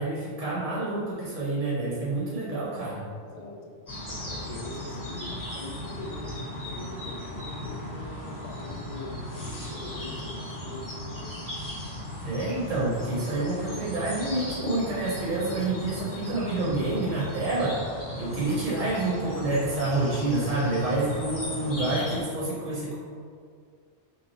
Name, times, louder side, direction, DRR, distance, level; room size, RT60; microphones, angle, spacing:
voice 1, 0.0-3.1 12.2-17.8 18.2-22.9, right 2 dB, 45° right, -8 dB, 0.9 m, -28 dB
voice 2, 3.3-3.8 4.0-6.4 6.6-11.4 19.2-19.5, left 2 dB, 55° left, -2 dB, 0.5 m, -42 dB
sound 1, 3.9-22.2, left 1 dB, 20° left, 0.9 m, -37 dB
3.2 x 2.2 x 4.0 m, 2.2 s
omnidirectional pair, 1.2 m